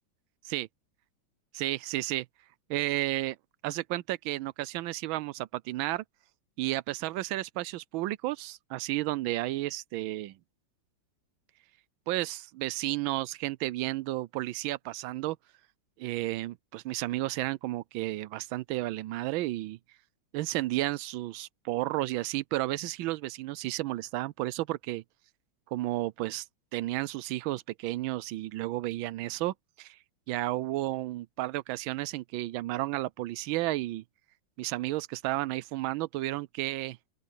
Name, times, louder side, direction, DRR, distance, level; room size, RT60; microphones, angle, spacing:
voice 1, 1.5-2.3 2.7-3.4 3.6-6.0 6.6-10.4 12.1-15.4 16.0-19.8 20.3-25.0 25.7-26.4 26.7-30.0 30.3-34.0 34.6-37.0, right 17 dB, 85° right, 1.4 m, -32 dB
open air
omnidirectional pair, 2.1 m